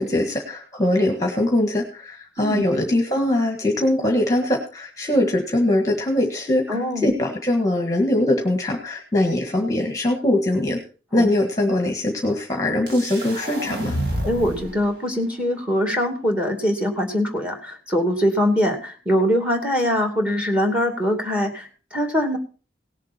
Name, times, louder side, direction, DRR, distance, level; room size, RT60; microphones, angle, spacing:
voice 1, 0.0-10.8 11.1-14.0, left 1 dB, 20° left, 3 dB, 1.6 m, -22 dB
voice 2, 6.7-7.1 11.2-11.3 14.2-22.4, equal, 5° right, 4 dB, 2.4 m, -22 dB
sound 1, 12.9-14.8, right 1 dB, 60° right, 2.6 m, -29 dB
18.0 x 7.5 x 4.3 m, 0.36 s
head